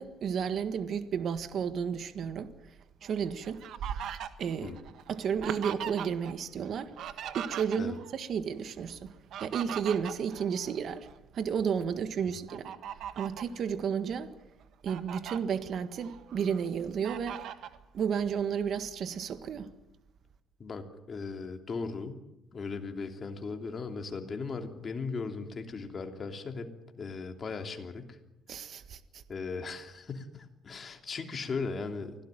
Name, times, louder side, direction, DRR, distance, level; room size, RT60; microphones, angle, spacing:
voice 1, 0.0-2.5 3.0-3.6 4.4-4.7 5.1-6.9 7.3-9.1 9.4-11.1 11.3-12.7 13.1-14.3 14.8-17.4 17.9-19.7 28.5-29.2, right 7 dB, 50° right, 1.6 m, -32 dB
Fowl, 3.0-6.3 6.6-8.2 9.1-11.2 11.6-11.8 12.5-13.5 14.1-14.2 14.6-15.4 15.9-16.6 17.0-17.8, right 9 dB, 65° right, 1.6 m, -40 dB
voice 2, 20.6-22.2 22.5-26.7 27.0-28.2 29.3-32.2, left 4 dB, 35° left, 3.0 m, -37 dB
25.0 x 17.0 x 9.2 m
cardioid pair, 135°, 0 cm